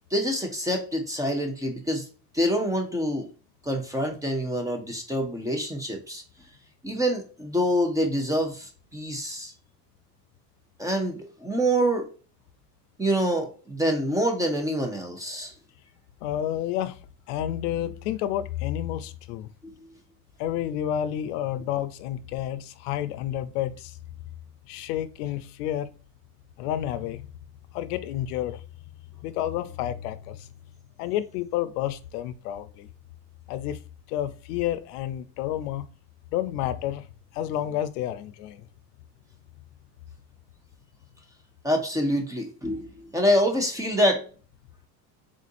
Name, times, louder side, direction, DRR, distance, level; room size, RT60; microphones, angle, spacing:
voice 1, 0.1-2.1 2.3-3.3 3.6-6.2 6.8-9.5 10.8-12.1 13.0-15.5 19.8-19.9 41.6-44.2, equal, 10° right, 0.5 m, -26 dB
voice 2, 16.2-17.0 17.3-19.5 20.4-24.0 24.7-25.9 26.6-27.3 27.7-28.6 29.2-30.5 31.0-32.9 33.5-33.8 34.1-35.8 36.3-37.1 37.3-38.7, left 11 dB, 85° left, 0.6 m, -30 dB
3.7 x 2.5 x 2.5 m
supercardioid pair, 125°, 45 cm